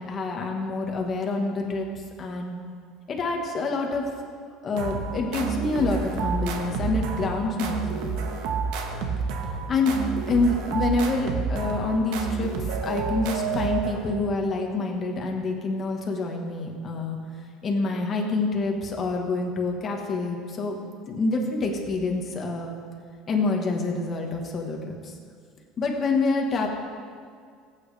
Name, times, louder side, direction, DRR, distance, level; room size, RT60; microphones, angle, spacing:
voice 1, 0.0-1.9 2.2-2.6 3.1-4.0 4.6-8.1 9.7-9.9 10.3-12.5 12.8-17.2 17.6-20.8 21.1-22.8 23.3-25.1 25.8-26.7, left 3 dB, 25° left, 1 dB, 1.3 m, -27 dB
sound 1, 4.8-14.3, right 5 dB, 65° right, 1.2 m, -29 dB
20.0 x 8.7 x 3.3 m, 2.1 s
cardioid pair, 175°, 0 cm